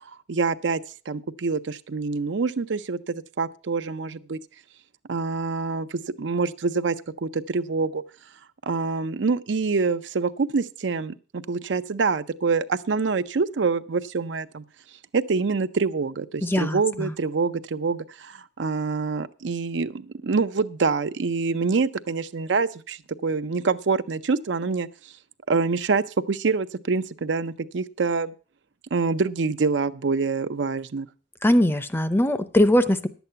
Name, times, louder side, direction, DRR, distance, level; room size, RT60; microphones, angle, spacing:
voice 1, 0.3-0.8 1.1-4.4 5.1-8.0 8.7-14.6 15.1-24.9 25.5-28.3 28.9-31.1, right 4 dB, 80° right, 12 dB, 0.6 m, -26 dB
voice 2, 16.4-17.1 31.4-33.1, left 1 dB, 10° left, 12 dB, 0.6 m, -21 dB
11.0 x 8.1 x 5.6 m, 0.37 s
head